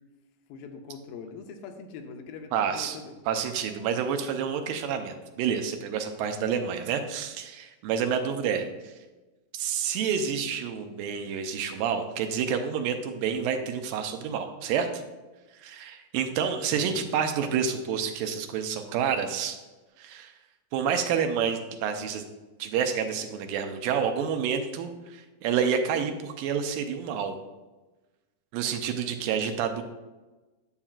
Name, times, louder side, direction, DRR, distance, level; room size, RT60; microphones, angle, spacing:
voice 1, 0.5-3.2 6.5-6.6 16.7-17.1, left 5 dB, 85° left, 5 dB, 2.5 m, -43 dB
voice 2, 2.5-3.0 3.3-8.9 9.5-15.0 15.5-19.6 20.0-20.3 20.7-22.2 22.6-27.4 28.5-29.8, right 7 dB, 80° right, 6 dB, 2.4 m, -29 dB
9.8 x 7.2 x 2.4 m, 1.2 s
omnidirectional pair, 4.1 m